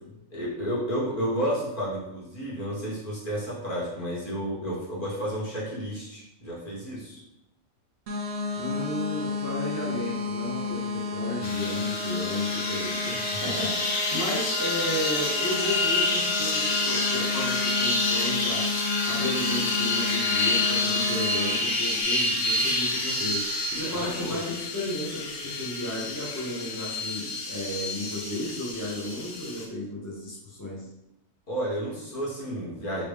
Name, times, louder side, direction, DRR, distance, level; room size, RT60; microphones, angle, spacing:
voice 1, 0.3-7.2 23.8-24.4 31.5-33.0, equal, 40° left, -7 dB, 1.2 m, -31 dB
sound 1, 8.1-21.6, left 3 dB, 65° right, 0.7 m, -32 dB
voice 2, 8.6-30.9, left 1 dB, 20° left, -5 dB, 0.5 m, -34 dB
sound 2, 11.4-29.7, left 2 dB, 85° left, 1.1 m, -28 dB
3.4 x 2.7 x 3.1 m, 0.88 s
omnidirectional pair, 1.5 m